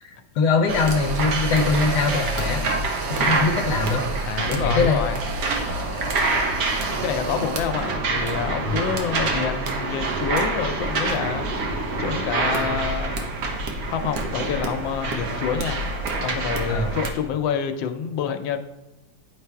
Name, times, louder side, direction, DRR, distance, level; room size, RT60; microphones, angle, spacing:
voice 1, 0.0-2.6 3.2-4.1 4.5-5.0 5.9-6.1 8.6-8.9 16.7-17.0, left 4 dB, 70° left, 3 dB, 1.2 m, -23 dB
sound 1, 0.7-17.1, right 3 dB, 60° right, 1.2 m, -26 dB
voice 2, 4.3-5.2 7.0-11.7 12.0-13.3 13.9-15.9 16.2-18.6, left 7 dB, 90° left, 8 dB, 1.4 m, -27 dB
9.8 x 3.3 x 4.6 m, 1.0 s
omnidirectional pair, 2.0 m